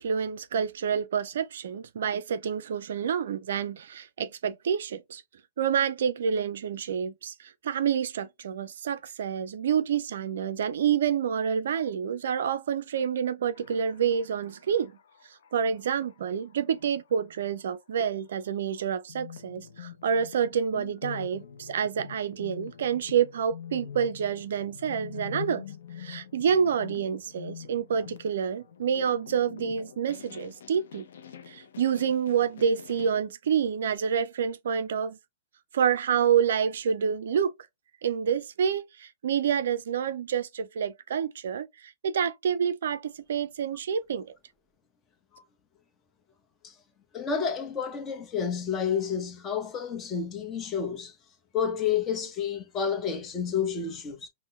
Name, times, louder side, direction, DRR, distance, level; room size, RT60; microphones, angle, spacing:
voice 1, 0.0-5.2 5.6-14.9 15.5-25.6 26.0-31.1 31.5-35.2 35.7-37.5 38.0-44.3, right 7 dB, 65° right, 0.3 m, -28 dB
sound 1, 13.5-18.1 18.7-18.8 19.1-33.1, left 8 dB, 65° left, 0.5 m, -45 dB
voice 2, 47.1-51.1 51.5-54.3, left 7 dB, 25° left, 0.8 m, -30 dB
5.2 x 2.0 x 2.3 m
hypercardioid pair, 115°, 0 cm